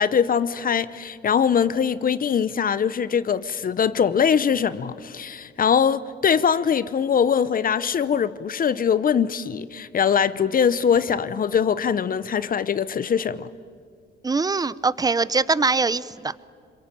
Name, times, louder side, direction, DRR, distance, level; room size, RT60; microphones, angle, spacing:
voice 1, 0.0-13.5, left 7 dB, 45° left, 0.8 m, -22 dB
voice 2, 14.2-16.4, right 4 dB, 20° right, 0.7 m, -23 dB
26.5 x 23.0 x 9.1 m
cardioid pair, 90°, 20 cm